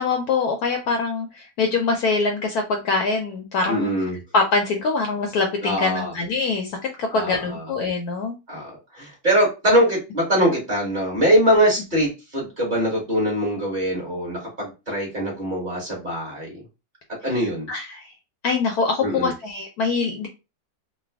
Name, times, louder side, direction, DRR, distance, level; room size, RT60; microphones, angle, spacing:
voice 1, 0.0-3.9 4.3-8.3 17.7-18.1 18.4-20.3, left 4 dB, 70° left, 3 dB, 0.9 m, -24 dB
voice 2, 3.7-4.2 5.6-6.1 7.1-7.6 8.5-16.6 17.2-17.7 19.0-19.3, equal, 30° right, -4 dB, 1.3 m, -22 dB
3.2 x 2.3 x 3.3 m, 0.28 s
omnidirectional pair, 2.0 m